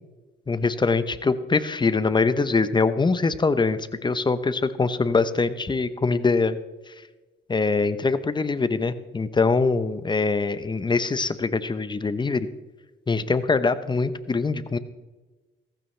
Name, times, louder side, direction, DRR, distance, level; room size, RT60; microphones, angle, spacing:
voice 1, 0.5-6.6 7.5-12.5 13.1-14.8, left 4 dB, 20° left, 12 dB, 0.9 m, -23 dB
15.5 x 15.0 x 3.4 m, 1.2 s
cardioid pair, 90°, 20 cm